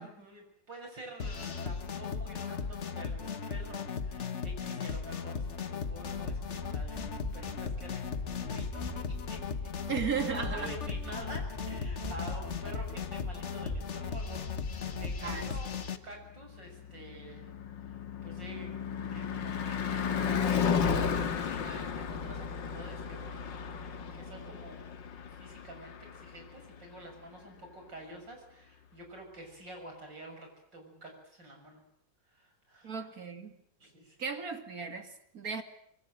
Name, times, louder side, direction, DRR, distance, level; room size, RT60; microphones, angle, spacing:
voice 1, 0.0-9.4 9.9-17.5 18.2-24.8 25.4-31.8 32.3-32.9 33.8-34.2, right 1 dB, 80° right, 3 dB, 7.4 m, -48 dB
sound 1, 1.2-16.0, left 6 dB, 45° left, 1.5 m, -37 dB
sound 2, 5.9-15.6, equal, 5° right, 1.2 m, -46 dB
voice 2, 9.9-10.7 15.2-15.5 32.8-33.6 34.2-35.6, right 6 dB, 50° right, 7 dB, 2.8 m, -36 dB
Car passing by / Truck / Engine, 16.5-26.8, left 7 dB, 85° left, 2.2 m, -34 dB
26.0 x 23.5 x 7.8 m, 0.68 s
omnidirectional pair, 1.9 m